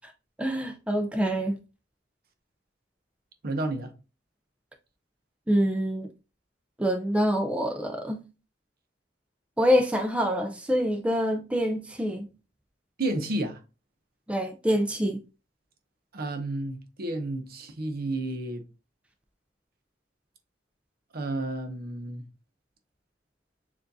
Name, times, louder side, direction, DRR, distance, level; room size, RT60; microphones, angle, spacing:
voice 1, 0.4-1.6 5.5-6.1 6.8-8.2 9.6-12.3 14.3-15.2, equal, 5° right, 0.4 m, -26 dB
voice 2, 3.4-3.9 13.0-13.6 16.1-18.6 21.1-22.3, right 2 dB, 55° right, 0.7 m, -31 dB
6.8 x 2.5 x 2.6 m
head